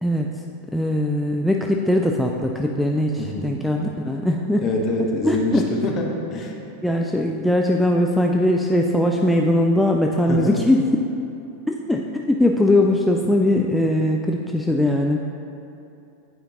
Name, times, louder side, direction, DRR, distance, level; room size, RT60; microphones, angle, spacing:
voice 1, 0.7-4.6 5.2-5.7 6.8-10.8 11.7-15.2, left 1 dB, 5° left, 1 dB, 0.4 m, -20 dB
voice 2, 3.2-3.5 4.6-6.5 10.3-10.6, left 2 dB, 35° left, 0 dB, 1.0 m, -25 dB
9.3 x 4.9 x 2.9 m, 2.8 s
figure-of-eight pair, 90°, 0 cm